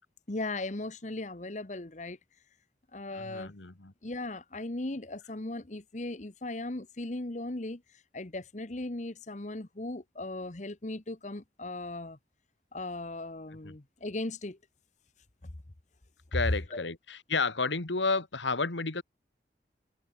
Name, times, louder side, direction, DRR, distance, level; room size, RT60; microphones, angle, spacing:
voice 1, 0.3-2.2 2.9-3.5 4.0-12.2 12.7-14.6 16.7-16.8, left 2 dB, 40° left, 1.1 m, -38 dB
voice 2, 3.1-3.9 13.6-13.7 16.3-19.0, left 4 dB, 85° left, 1.9 m, -31 dB
head